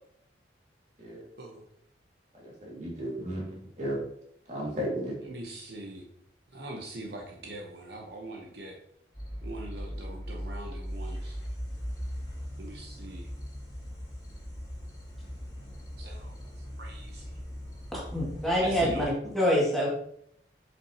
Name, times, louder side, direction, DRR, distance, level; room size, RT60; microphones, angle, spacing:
voice 1, 2.4-3.5 3.8-4.0 4.5-5.2, equal, 40° right, -3 dB, 2.2 m, -34 dB
voice 2, 5.3-6.0 6.5-8.8 9.4-11.4 12.6-13.3 16.0-16.3 16.8-17.2 18.6-19.1, right 1 dB, 60° right, 0 dB, 0.9 m, -41 dB
sound 1, 9.1-19.1, equal, 20° left, 2.5 m, -39 dB
voice 3, 17.9-19.9, equal, ahead, -6 dB, 2.1 m, -26 dB
7.8 x 5.4 x 2.9 m, 0.70 s
head